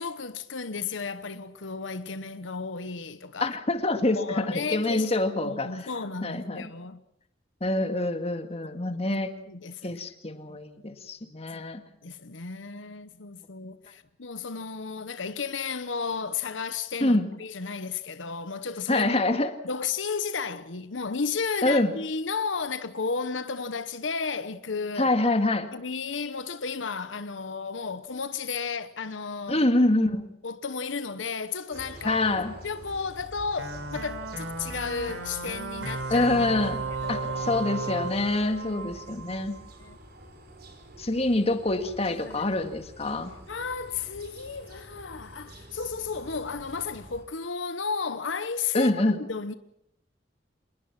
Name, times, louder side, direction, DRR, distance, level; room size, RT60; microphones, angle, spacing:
voice 1, 0.0-3.6 4.1-7.0 8.6-9.0 9.5-10.0 10.5-10.6 11.5-11.6 12.0-19.4 19.6-25.1 25.7-29.7 30.4-32.2 32.6-36.7 37.0-37.5 38.4-38.5 39.1-39.5 39.8-40.0 42.1-42.6 43.5-49.5, left 5 dB, 85° left, 1.1 m, -33 dB
voice 2, 3.4-5.8 6.2-6.6 7.6-9.3 9.8-11.8 17.0-17.3 18.9-19.5 21.6-21.9 25.0-25.7 29.5-30.2 32.0-32.5 36.1-36.8 37.1-39.5 41.0-43.3 48.7-49.2, left 2 dB, 35° left, 2.0 m, -25 dB
sound 1, 31.7-47.3, right 1 dB, 55° right, 5.2 m, -47 dB
sound 2, 33.6-39.7, right 4 dB, 80° right, 5.0 m, -35 dB
27.5 x 20.5 x 6.0 m
head